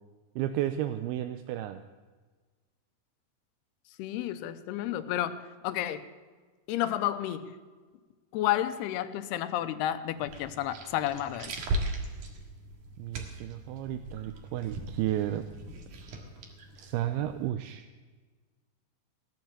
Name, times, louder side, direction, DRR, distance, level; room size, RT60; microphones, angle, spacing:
voice 1, 0.4-1.8 13.0-15.5 16.8-17.9, right 12 dB, 80° right, 9 dB, 2.5 m, -32 dB
voice 2, 4.0-6.1 6.7-7.6 8.3-11.6, left 12 dB, 85° left, 11 dB, 2.8 m, -31 dB
sound 1, 10.2-17.5, right 1 dB, 55° right, 2.9 m, -39 dB
17.5 x 10.5 x 7.5 m, 1.4 s
omnidirectional pair, 4.7 m